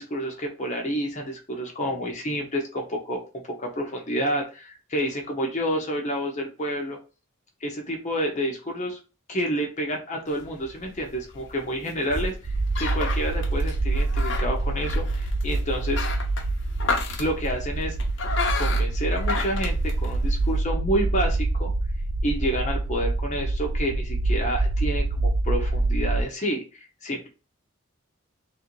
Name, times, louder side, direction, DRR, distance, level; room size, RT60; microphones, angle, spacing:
voice 1, 0.0-3.2 3.6-7.0 7.6-9.0 9.3-16.1 17.2-18.0 18.5-21.7 22.2-27.3, equal, 35° left, 1 dB, 0.8 m, -29 dB
sound 1, 10.3-20.6, left 3 dB, 60° left, 0.8 m, -33 dB
sound 2, 12.4-26.2, right 2 dB, 40° right, 0.4 m, -26 dB
3.3 x 2.7 x 4.4 m, 0.33 s
head